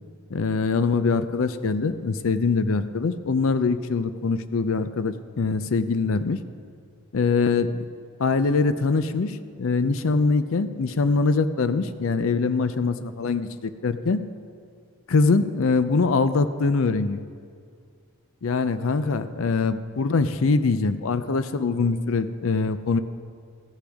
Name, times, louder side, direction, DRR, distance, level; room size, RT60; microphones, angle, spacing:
voice 1, 0.3-6.4 7.1-7.8 8.2-14.2 15.1-17.2 18.4-23.0, left 4 dB, 70° left, 12 dB, 0.5 m, -23 dB
14.5 x 10.0 x 3.5 m, 2.2 s
head